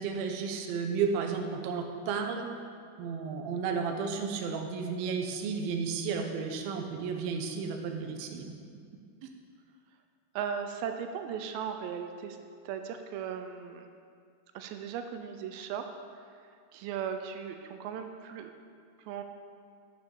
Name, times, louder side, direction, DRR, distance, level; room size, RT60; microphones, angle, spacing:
voice 1, 0.0-2.5 3.0-8.4 9.2-9.3, right 5 dB, 70° right, 3 dB, 2.5 m, -33 dB
voice 2, 10.4-12.4 12.7-13.9 14.6-15.8 16.7-18.5 19.1-19.2, right 7 dB, 90° right, 7 dB, 2.8 m, -37 dB
8.8 x 8.7 x 7.0 m, 2.2 s
omnidirectional pair, 4.9 m